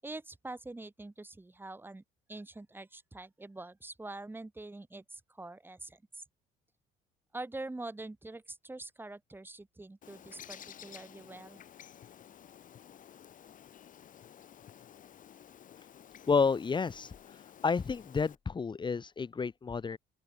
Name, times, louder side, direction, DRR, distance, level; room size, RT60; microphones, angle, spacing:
voice 1, 0.0-2.0 2.3-6.2 7.3-11.6, right 2 dB, 10° right, 7.4 m, -45 dB
Bird, 10.0-18.4, left 9 dB, 50° left, 6.0 m, -53 dB
voice 2, 16.3-17.1 17.6-20.0, left 5 dB, 25° left, 1.6 m, -30 dB
open air
cardioid pair, 110°, 17 cm